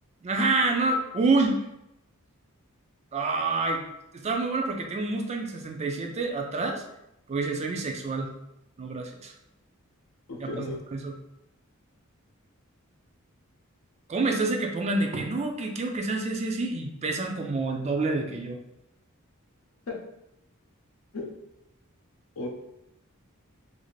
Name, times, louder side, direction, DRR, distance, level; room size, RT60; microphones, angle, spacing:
voice 1, 0.2-1.6 3.1-3.8 4.1-6.8 7.3-8.3 8.8-9.3 10.4-10.7 10.9-11.1 14.1-18.6, right 3 dB, 30° right, 3 dB, 0.3 m, -27 dB
voice 2, 10.3-10.8 19.9-20.0 21.1-21.3 22.4-22.5, left 2 dB, 75° left, 1 dB, 0.6 m, -34 dB
2.5 x 2.4 x 3.1 m, 0.84 s
head